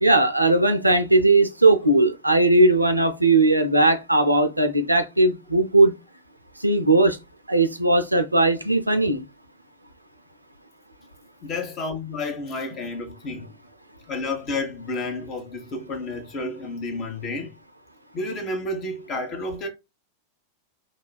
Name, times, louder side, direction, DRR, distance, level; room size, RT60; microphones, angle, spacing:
voice 1, 0.0-5.9 6.6-7.2 7.5-9.2, right 2 dB, 85° right, 0.4 m, -18 dB
voice 2, 11.4-13.5 14.1-17.5 18.1-19.7, left 2 dB, 30° left, 0.8 m, -31 dB
3.2 x 2.3 x 2.2 m
figure-of-eight pair, 90°, 0 cm